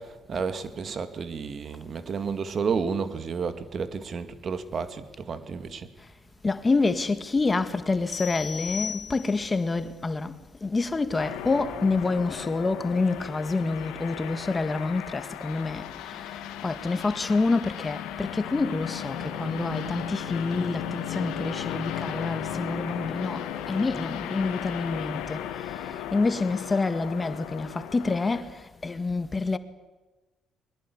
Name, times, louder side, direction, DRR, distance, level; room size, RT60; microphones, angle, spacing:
voice 1, 0.0-5.9, right 5 dB, 50° right, 2.2 m, -31 dB
voice 2, 6.4-10.3 10.6-25.5 26.1-28.5 28.8-29.6, left 3 dB, 30° left, 1.9 m, -27 dB
sound 1, 8.1-9.6, left 7 dB, 50° left, 1.0 m, -36 dB
sound 2, 11.2-28.4, left 9 dB, 85° left, 2.5 m, -36 dB
22.0 x 21.0 x 9.8 m
supercardioid pair, 65°, 0 cm